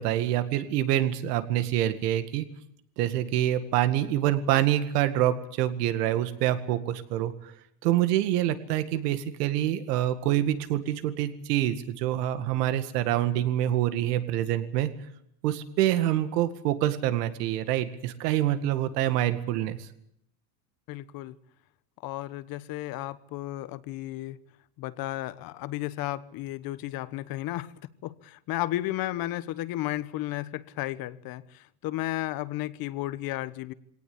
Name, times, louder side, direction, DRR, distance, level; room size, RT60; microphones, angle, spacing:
voice 1, 0.0-2.5 3.0-7.5 7.8-14.9 15.4-19.9, right 12 dB, 80° right, 11 dB, 2.1 m, -26 dB
voice 2, 20.9-21.3 22.0-24.4 24.8-27.7 28.0-33.7, left 15 dB, 45° left, 16 dB, 1.2 m, -33 dB
22.0 x 18.0 x 8.6 m, 0.75 s
supercardioid pair, 130°, 47 cm